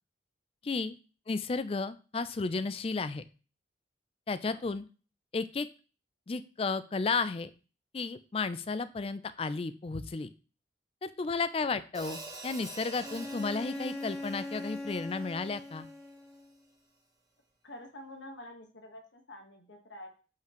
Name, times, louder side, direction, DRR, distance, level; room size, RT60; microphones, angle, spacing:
voice 1, 0.6-1.0 1.3-3.2 4.3-4.9 5.3-5.7 6.3-7.5 7.9-10.3 11.0-15.9, left 4 dB, 30° left, 14 dB, 0.4 m, -33 dB
Hi-hat, 11.9-16.2, right 2 dB, 20° right, 1.2 m, -47 dB
Bowed string instrument, 13.0-16.5, left 2 dB, 5° left, 0.9 m, -41 dB
voice 2, 17.6-20.1, left 1 dB, 85° left, 4 dB, 1.4 m, -48 dB
6.9 x 5.6 x 3.0 m, 0.36 s
head